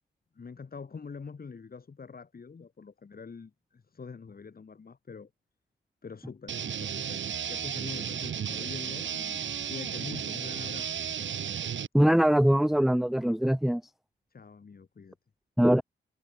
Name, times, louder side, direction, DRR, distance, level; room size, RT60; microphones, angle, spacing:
voice 1, 0.3-5.3 6.0-10.9 14.3-15.1, left 5 dB, 45° left, 5.1 m, -45 dB
sound 1, 6.5-11.9, right 8 dB, 65° right, 1.8 m, -34 dB
voice 2, 11.9-13.8 15.6-15.8, equal, ahead, 0.6 m, -22 dB
cardioid pair, 65°, 21 cm